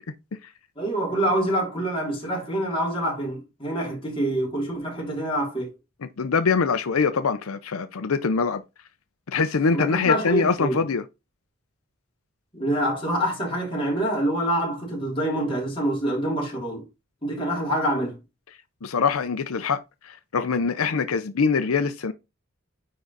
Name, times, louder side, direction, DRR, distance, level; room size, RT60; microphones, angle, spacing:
voice 1, 0.8-5.7 9.7-10.8 12.5-16.8 17.2-18.2, right 1 dB, 25° left, 3.5 m, -26 dB
voice 2, 6.2-8.6 9.3-11.0 18.8-22.1, left 5 dB, 85° left, 0.6 m, -23 dB
9.5 x 3.8 x 4.0 m
head